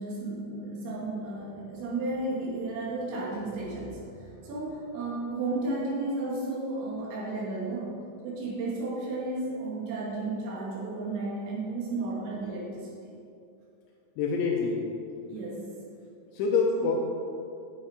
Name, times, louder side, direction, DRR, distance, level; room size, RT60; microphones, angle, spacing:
voice 1, 0.0-8.0 8.2-12.9 15.3-15.7 16.8-16.9, right 2 dB, 70° right, -5 dB, 4.4 m, -33 dB
voice 2, 14.2-14.9 16.3-17.0, left 4 dB, 85° left, -1 dB, 3.0 m, -26 dB
10.0 x 7.3 x 5.0 m, 2.6 s
omnidirectional pair, 5.6 m